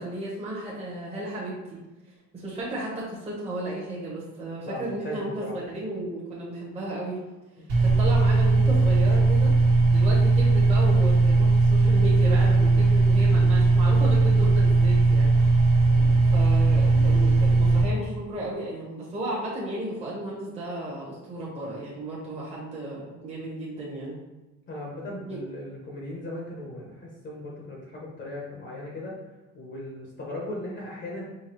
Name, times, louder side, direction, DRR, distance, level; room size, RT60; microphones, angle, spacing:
voice 1, 0.0-1.5 2.3-7.2 7.8-9.5 9.9-15.3 16.3-24.1 25.3-25.4, right 1 dB, 20° right, -6 dB, 0.9 m, -34 dB
voice 2, 4.6-5.5 24.7-29.1 29.5-31.2, left 1 dB, 35° left, -3 dB, 0.8 m, -37 dB
sound 1, 7.7-17.8, right 3 dB, 75° right, 1.2 m, -19 dB
5.1 x 2.3 x 2.9 m, 1.1 s
cardioid pair, 135°, 34 cm